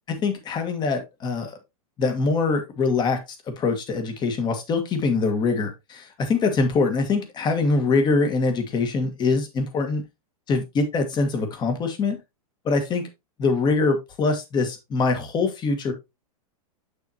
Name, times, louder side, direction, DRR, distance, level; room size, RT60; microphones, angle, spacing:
voice 1, 0.2-1.6 2.0-3.2 3.5-10.0 10.5-12.2 12.7-13.1 13.4-15.9, left 4 dB, 25° left, 7 dB, 1.6 m, -23 dB
7.0 x 6.3 x 2.9 m, 0.22 s
hypercardioid pair, 140°, 19 cm